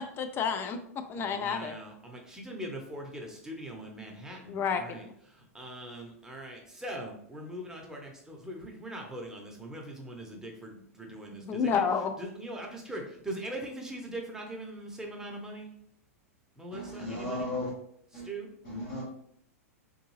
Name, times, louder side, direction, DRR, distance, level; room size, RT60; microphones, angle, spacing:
voice 1, 0.0-1.7 4.5-4.8 11.4-12.2, left 6 dB, 30° left, 0.4 m, -30 dB
voice 2, 1.2-11.8 12.2-15.7 16.6-17.5 18.1-18.5, right 1 dB, 5° right, 0.8 m, -41 dB
voice 3, 16.7-17.7 18.1-18.3 18.6-19.0, left 1 dB, 50° left, 1.4 m, -35 dB
3.5 x 2.6 x 3.2 m
figure-of-eight pair, 100°, 8 cm